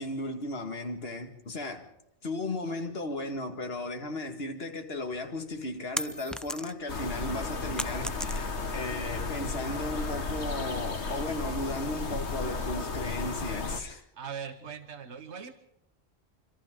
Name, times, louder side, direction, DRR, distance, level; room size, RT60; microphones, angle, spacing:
voice 1, 0.0-1.9 2.2-14.0, left 2 dB, 65° left, 2.1 m, -35 dB
sound 1, 5.2-7.0 7.3-8.8, equal, ahead, 0.4 m, -36 dB
sound 2, 6.9-13.8, left 4 dB, 90° left, 1.9 m, -34 dB
voice 2, 13.1-13.5 14.1-15.5, right 6 dB, 90° right, 1.5 m, -41 dB
26.5 x 26.0 x 3.7 m
omnidirectional pair, 1.1 m